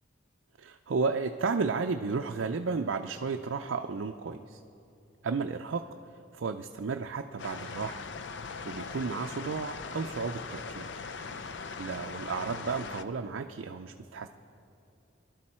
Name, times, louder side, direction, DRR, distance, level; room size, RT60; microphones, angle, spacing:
voice 1, 0.6-4.6 5.2-5.9 6.3-8.0 8.6-10.9 11.8-14.3, right 4 dB, 70° right, 5 dB, 0.5 m, -33 dB
sound 1, 7.4-13.0, left 4 dB, 60° left, 0.6 m, -40 dB
22.5 x 12.0 x 4.3 m, 2.7 s
head